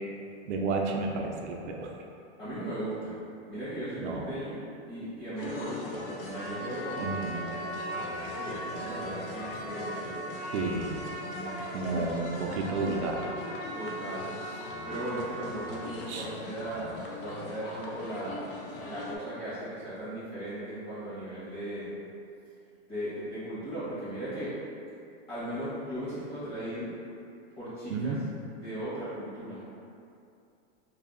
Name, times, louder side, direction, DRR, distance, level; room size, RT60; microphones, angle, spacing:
voice 1, 0.5-2.0 4.0-4.2 7.0-7.5 10.5-11.0 11.7-13.3 16.1-16.3 27.9-28.2, right 3 dB, 80° right, 1 dB, 0.5 m, -31 dB
voice 2, 2.4-3.2 3.5-7.2 7.9-10.3 11.3-12.1 13.7-22.0 22.9-24.5 25.3-26.9 27.6-28.1 28.5-29.8, right 1 dB, 15° left, -13 dB, 1.0 m, -37 dB
sound 1, 5.4-19.2, left 2 dB, 55° left, 0.4 m, -41 dB
Trumpet, 6.3-15.8, right 1 dB, 70° left, 0.9 m, -40 dB
2.7 x 2.0 x 3.6 m, 2.6 s
supercardioid pair, 165°, 34 cm